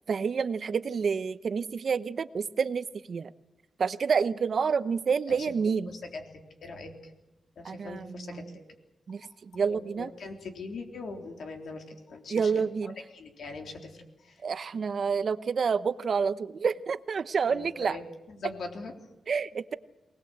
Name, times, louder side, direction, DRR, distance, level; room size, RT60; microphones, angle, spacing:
voice 1, 0.1-3.3 3.8-5.9 7.6-8.4 9.1-10.1 12.3-13.0 14.4-18.0 19.3-19.7, right 6 dB, 55° right, 13 dB, 0.9 m, -28 dB
voice 2, 5.3-7.1 7.6-8.6 9.2-9.3 9.7-14.4 17.5-18.9, left 3 dB, 70° left, 3 dB, 3.7 m, -42 dB
24.0 x 19.5 x 8.0 m, 0.97 s
wide cardioid pair, 110°, 0 cm